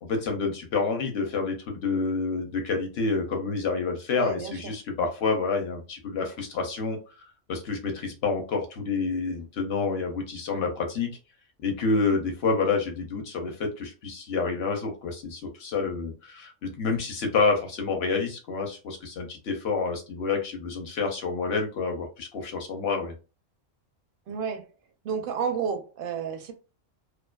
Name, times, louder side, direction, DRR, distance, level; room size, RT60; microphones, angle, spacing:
voice 1, 0.0-11.1 11.6-23.1, left 4 dB, 60° left, 0.8 m, -28 dB
voice 2, 4.1-4.5 24.3-24.7 25.0-26.5, right 6 dB, 60° right, 0.6 m, -31 dB
2.4 x 2.3 x 2.2 m
omnidirectional pair, 1.4 m